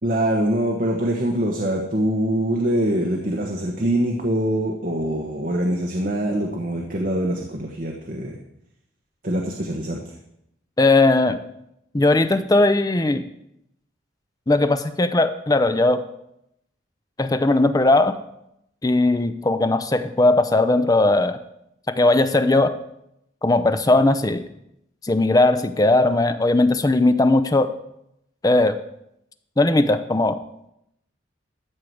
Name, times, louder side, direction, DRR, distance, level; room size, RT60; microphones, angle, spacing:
voice 1, 0.0-8.4 9.2-10.0, right 1 dB, 45° right, 1 dB, 1.2 m, -24 dB
voice 2, 10.8-11.4 11.9-13.3 14.5-16.0 17.2-18.2 18.8-21.4 22.0-22.7 23.4-24.4 25.0-27.7 28.4-28.8 29.6-30.4, left 2 dB, 20° left, 10 dB, 0.5 m, -18 dB
13.5 x 4.7 x 7.8 m, 0.79 s
head